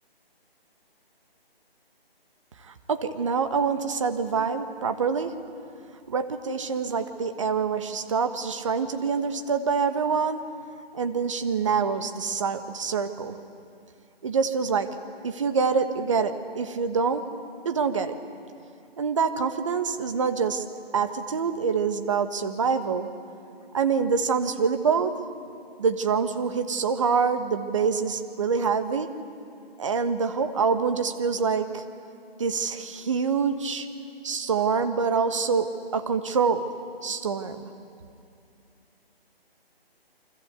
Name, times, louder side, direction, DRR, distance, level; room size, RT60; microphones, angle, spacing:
voice 1, 2.7-5.3 6.1-10.4 10.9-13.4 14.2-14.9 15.2-17.2 17.6-18.1 19.0-20.6 20.9-23.1 23.7-25.1 25.8-29.1 29.8-31.8 32.4-33.9 34.2-36.7 37.0-37.7, right 5 dB, 30° right, 8 dB, 1.4 m, -26 dB
29.0 x 24.5 x 8.1 m, 2.5 s
figure-of-eight pair, 160°, 30 cm